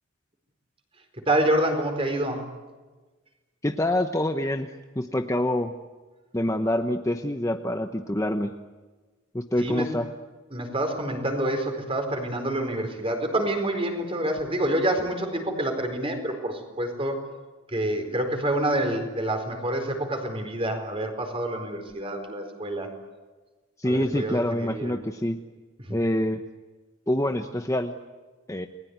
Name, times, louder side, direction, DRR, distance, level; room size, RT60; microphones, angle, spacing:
voice 1, 1.3-2.4 9.6-9.9 10.5-17.2 17.7-22.9 23.8-25.0 25.8-26.0, right 1 dB, 25° right, 5 dB, 4.5 m, -27 dB
voice 2, 3.6-5.7 6.3-8.6 9.3-10.1 23.8-25.4 25.9-26.4 27.1-27.9 28.5-28.7, left 1 dB, 15° left, 6 dB, 0.9 m, -26 dB
29.5 x 21.0 x 9.6 m, 1.3 s
head